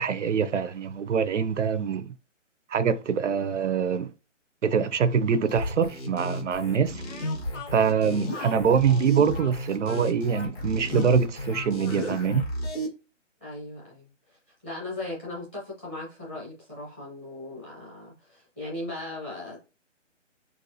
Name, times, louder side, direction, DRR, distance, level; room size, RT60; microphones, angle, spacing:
voice 1, 0.0-2.1 2.7-4.1 4.6-7.0 7.7-12.4, right 6 dB, 70° right, 0.5 m, -24 dB
sound 1, 5.5-12.9, equal, 55° left, 1.7 m, -33 dB
Speech, 7.0-12.4, left 4 dB, 75° left, 1.0 m, -44 dB
voice 2, 8.0-8.4 13.4-14.1 14.6-19.6, left 2 dB, 10° left, 0.7 m, -38 dB
4.0 x 2.3 x 2.6 m
hypercardioid pair, 155°, 37 cm